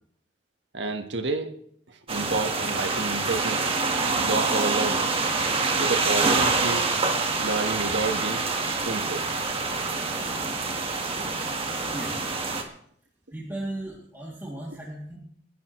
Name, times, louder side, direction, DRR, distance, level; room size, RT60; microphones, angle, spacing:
voice 1, 0.7-1.6 1.9-3.7 4.2-5.1 5.7-6.9 7.4-9.3, right 3 dB, 75° right, 6 dB, 1.6 m, -30 dB
sound 1, 2.1-12.6, right 3 dB, 30° right, 1.6 m, -26 dB
voice 2, 11.9-12.2 13.3-15.2, right 1 dB, 10° right, -6 dB, 2.8 m, -36 dB
30.0 x 11.0 x 3.2 m, 0.66 s
head